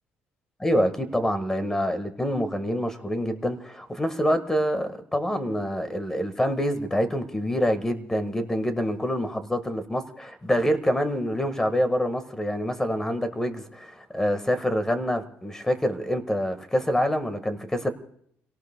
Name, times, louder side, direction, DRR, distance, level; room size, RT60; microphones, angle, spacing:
voice 1, 0.6-17.9, equal, 10° left, 1.5 m, -26 dB
30.0 x 18.0 x 2.2 m
cardioid pair, 115°, 5 cm